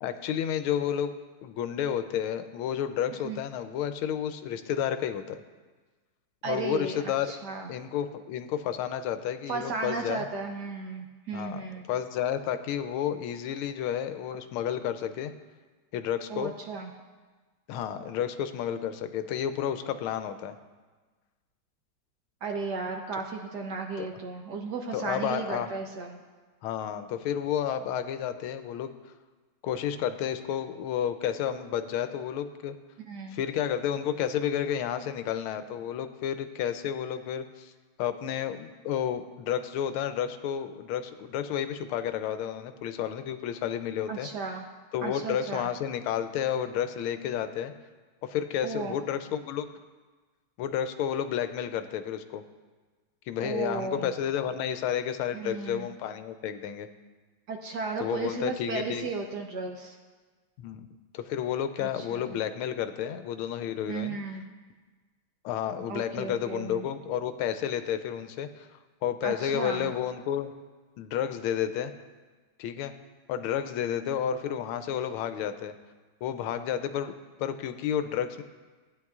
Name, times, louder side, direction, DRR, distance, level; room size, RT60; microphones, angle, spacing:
voice 1, 0.0-1.1 1.4-5.4 6.4-7.3 7.7-10.2 11.3-15.3 15.9-16.5 17.7-20.5 24.0-24.1 24.9-25.7 26.6-28.9 29.6-32.7 33.3-37.7 38.0-44.3 44.9-47.7 48.2-49.7 50.6-52.4 53.3-56.9 58.0-59.1 60.6-60.9 61.1-64.2 65.4-68.7 69.0-70.5 71.0-71.9 72.6-72.9 73.3-75.7 76.2-77.1 77.4-78.4, left 9 dB, 80° left, 10 dB, 1.4 m, -31 dB
voice 2, 3.1-3.4 6.4-7.0 7.3-7.7 9.5-11.9 16.3-16.9 22.4-26.2 33.1-33.4 44.1-44.6 45.0-45.7 48.6-49.0 53.4-54.1 55.3-55.9 57.5-60.0 61.8-62.4 63.9-64.4 65.9-66.9 69.2-69.9, right 4 dB, 65° right, 2 dB, 1.1 m, -35 dB
16.0 x 9.2 x 2.4 m, 1.3 s
omnidirectional pair, 2.3 m